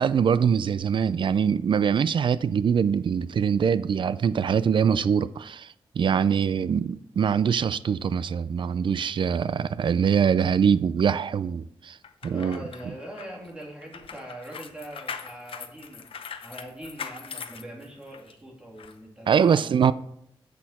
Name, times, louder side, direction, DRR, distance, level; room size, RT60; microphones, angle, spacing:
voice 1, 0.0-5.7 6.0-12.0 12.2-12.6 19.3-19.9, right 7 dB, 60° right, 0.4 m, -23 dB
sound 1, 12.0-18.3 18.8-18.9, left 6 dB, 75° left, 0.7 m, -40 dB
voice 2, 12.3-16.0 16.4-19.9, right 1 dB, 10° right, 2.8 m, -42 dB
8.0 x 6.3 x 4.2 m
wide cardioid pair, 100°, 9 cm